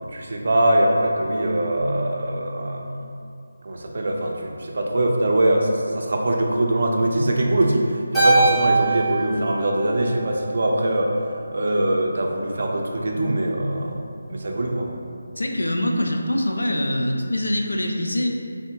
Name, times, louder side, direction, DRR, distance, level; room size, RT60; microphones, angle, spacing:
voice 1, 0.0-3.1 3.6-11.1 11.5-14.0 14.3-14.9, right 1 dB, 55° right, 0 dB, 0.4 m, -22 dB
Keyboard (musical), 8.1-10.7, right 3 dB, ahead, 0.6 m, -22 dB
voice 2, 15.4-18.3, left 1 dB, 90° left, 2 dB, 0.4 m, -24 dB
3.5 x 2.1 x 2.8 m, 2.4 s
figure-of-eight pair, 165°, 0 cm